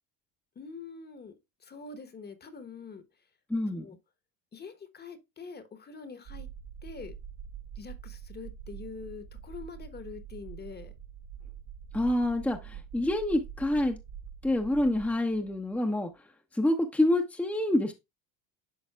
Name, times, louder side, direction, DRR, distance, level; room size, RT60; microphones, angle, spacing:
voice 1, 0.5-1.3 1.6-3.0 3.8-4.0 4.5-6.5 6.8-7.1 7.7-10.9 15.1-15.2, left 5 dB, 25° left, 1.1 m, -44 dB
voice 2, 3.5-3.8 11.9-14.0 14.4-16.1 16.5-17.9, left 1 dB, 5° left, 0.7 m, -27 dB
sound 1, 6.3-15.8, right 8 dB, 60° right, 1.1 m, -45 dB
11.5 x 3.9 x 2.3 m
supercardioid pair, 105°, 36 cm